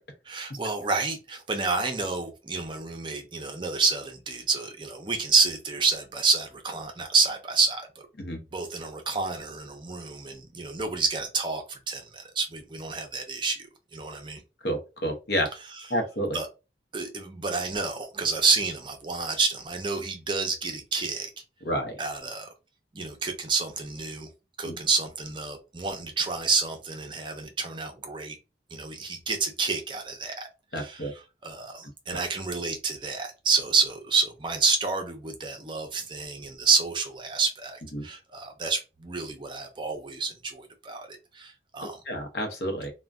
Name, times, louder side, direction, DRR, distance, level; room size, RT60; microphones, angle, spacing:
voice 1, 0.3-7.9 8.5-14.4 15.7-15.8 16.3-16.5 16.9-21.3 22.0-22.5 22.9-24.3 24.6-28.4 28.7-30.5 30.7-42.0, right 4 dB, 25° right, 0.5 m, -29 dB
voice 2, 14.6-15.5 15.9-16.4 21.6-22.0 24.6-24.8 30.7-31.1 37.9-38.0 42.1-42.9, equal, 65° left, 0.7 m, -29 dB
2.5 x 2.1 x 3.4 m
head